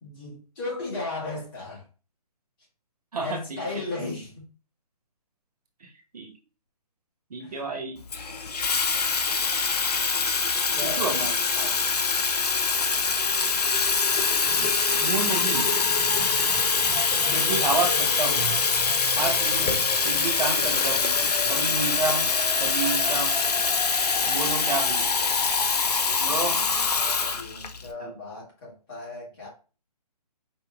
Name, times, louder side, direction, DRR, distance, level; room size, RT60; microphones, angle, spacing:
voice 1, 0.0-1.8 3.2-4.5 7.4-7.6 10.7-12.2 16.1-16.3 19.2-19.4 26.2-29.5, left 2 dB, 30° left, 2.0 m, -37 dB
voice 2, 3.1-3.6 5.8-6.3 7.3-8.0 11.0-11.3 15.0-15.7 17.3-18.5 19.2-19.8 20.0-21.2 21.5-22.2 22.6-23.3 24.3-25.1 26.1-26.5 28.0-28.2, right 4 dB, 65° right, 1.2 m, -30 dB
Water tap faucet / Fill (with liquid), 8.1-27.9, left 5 dB, 70° left, 0.7 m, -24 dB
sound 1, 14.1-24.9 25.2-25.4, right 1 dB, 5° right, 0.6 m, -39 dB
4.5 x 3.0 x 2.4 m
figure-of-eight pair, 145°, 21 cm